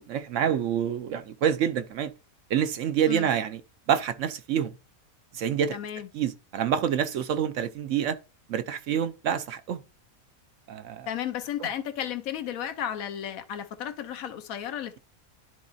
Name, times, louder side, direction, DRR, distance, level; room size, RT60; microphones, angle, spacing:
voice 1, 0.0-2.1 2.5-3.6 3.9-4.7 5.3-5.8 6.1-8.2 8.5-9.8 10.7-11.1, right 9 dB, 70° right, 0.9 m, -27 dB
voice 2, 5.7-6.1 11.1-15.0, left 10 dB, 75° left, 1.2 m, -33 dB
11.5 x 4.0 x 2.6 m
omnidirectional pair, 1.5 m